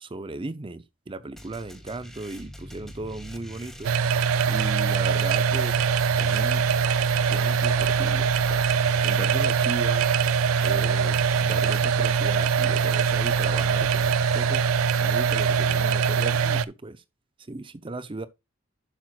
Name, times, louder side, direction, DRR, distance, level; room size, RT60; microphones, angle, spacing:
voice 1, 0.0-3.9 4.5-5.8 6.2-6.7 7.3-8.7 9.0-10.1 10.6-14.6 15.0-17.0 17.4-18.3, right 2 dB, 25° right, 0.5 m, -36 dB
sound 1, 1.3-15.9, equal, ahead, 1.0 m, -44 dB
sound 2, 3.8-16.7, right 6 dB, 80° right, 0.4 m, -23 dB
11.5 x 6.1 x 2.3 m
head